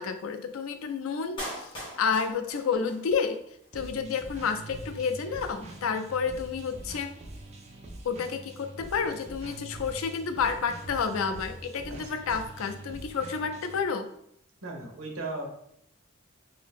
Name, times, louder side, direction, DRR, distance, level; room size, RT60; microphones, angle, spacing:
voice 1, 0.0-1.6 2.0-3.4 3.7-7.1 8.0-14.1, left 6 dB, 75° left, 8 dB, 0.4 m, -30 dB
Clapping, 1.4-3.4 3.6-3.7, equal, 25° left, 1.0 m, -40 dB
sound 1, 3.7-13.8, right 2 dB, 30° right, 0.4 m, -44 dB
voice 2, 14.6-15.5, right 2 dB, 80° right, 1 dB, 0.9 m, -36 dB
2.8 x 2.7 x 3.5 m, 0.71 s
head